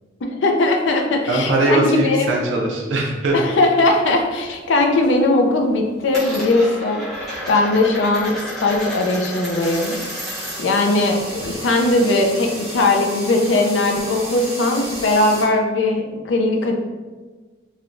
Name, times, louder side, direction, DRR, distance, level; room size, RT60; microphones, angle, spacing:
voice 1, 0.4-2.3 3.3-16.7, left 2 dB, 75° left, 3 dB, 0.4 m, -19 dB
voice 2, 1.3-3.4, right 2 dB, 85° right, -1 dB, 0.5 m, -20 dB
Coin (dropping), 3.3-4.4 4.7-5.2 5.5-10.8 11.1-12.8, equal, ahead, 0.8 m, -33 dB
sound 1, 9.6-15.4, right 1 dB, 35° right, 1.0 m, -33 dB
3.3 x 2.2 x 2.5 m, 1.3 s
head